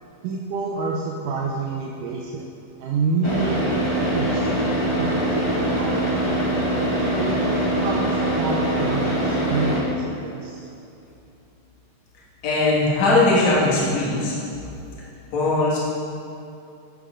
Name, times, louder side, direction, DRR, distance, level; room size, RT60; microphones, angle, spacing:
voice 1, 0.2-2.5 2.8-3.6 3.9-6.5 7.2-9.2 9.5-10.7, right 4 dB, 85° right, -2 dB, 2.3 m, -28 dB
Car / Idling, 3.2-9.8, right 1 dB, 25° left, 0.5 m, -23 dB
voice 2, 12.4-14.3 15.3-15.8, left 2 dB, 60° left, -7 dB, 3.2 m, -19 dB
13.5 x 8.3 x 3.8 m, 2.7 s
omnidirectional pair, 3.7 m